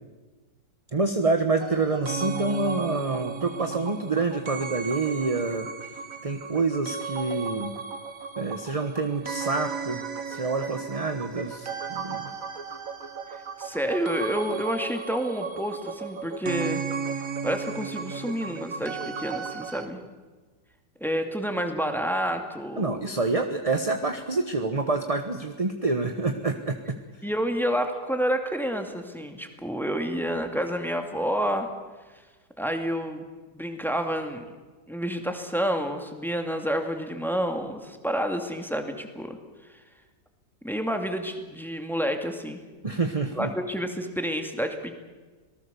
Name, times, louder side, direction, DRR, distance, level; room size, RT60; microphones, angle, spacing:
voice 1, 0.9-5.7 6.2-7.7 8.4-12.3 22.8-27.0 42.8-43.5, right 3 dB, 25° right, 6 dB, 1.1 m, -27 dB
sound 1, 1.6-19.9, right 6 dB, 50° right, 1.7 m, -35 dB
voice 2, 13.3-16.8 17.4-20.0 21.0-23.1 27.2-31.7 32.6-33.2 33.5-34.4 34.9-39.4 40.6-42.6 43.4-44.9, equal, ahead, 5 dB, 2.2 m, -29 dB
26.5 x 19.0 x 7.0 m, 1.3 s
omnidirectional pair, 2.0 m